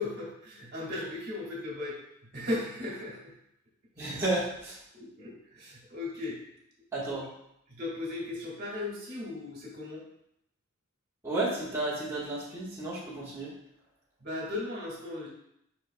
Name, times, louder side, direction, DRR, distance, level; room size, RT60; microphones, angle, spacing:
voice 1, 0.0-2.0 2.3-3.3 4.0-4.1 4.9-6.4 7.7-10.0 14.2-15.3, left 2 dB, 50° right, -3 dB, 2.0 m, -36 dB
voice 2, 4.0-4.8 6.9-7.3 11.2-13.5, right 2 dB, 15° right, -9 dB, 1.6 m, -32 dB
8.8 x 5.5 x 2.3 m, 0.77 s
head